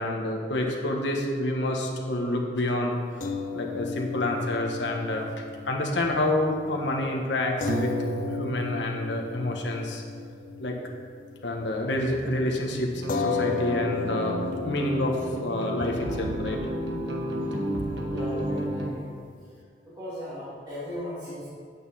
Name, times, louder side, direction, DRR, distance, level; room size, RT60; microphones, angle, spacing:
voice 1, 0.0-3.0 3.5-5.3 5.6-7.9 8.3-10.0 10.6-10.8 11.4-14.4 14.6-16.6 18.1-18.2, left 1 dB, 85° left, 1 dB, 1.3 m, -28 dB
sound 1, 3.2-11.7 12.0-12.2 13.1-19.6, left 4 dB, 45° left, 0.4 m, -35 dB
Piano, 7.7-10.6, right 3 dB, 60° right, 0.7 m, -35 dB
sound 2, 12.9-18.9, equal, 80° right, 1.4 m, -31 dB
voice 2, 18.1-19.1 19.8-21.5, left 1 dB, 25° right, -12 dB, 2.4 m, -37 dB
9.4 x 8.5 x 4.2 m, 2.2 s
head